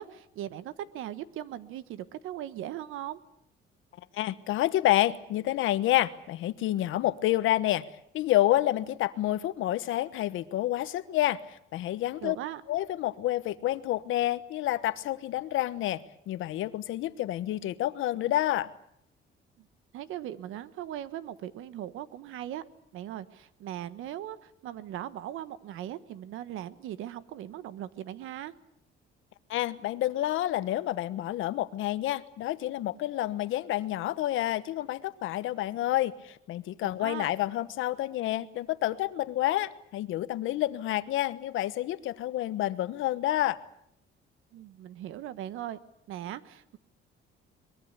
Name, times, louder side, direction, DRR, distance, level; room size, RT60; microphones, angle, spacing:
voice 1, 0.0-3.2 12.2-12.6 19.9-22.6 22.9-28.5 37.0-37.3 44.5-45.8 46.1-46.8, right 12 dB, 85° right, 14 dB, 1.4 m, -39 dB
voice 2, 4.1-7.8 8.1-12.4 12.7-18.7 29.5-43.6, left 14 dB, 80° left, 14 dB, 1.2 m, -29 dB
23.5 x 22.0 x 8.2 m, 0.71 s
cardioid pair, 165°, 20 cm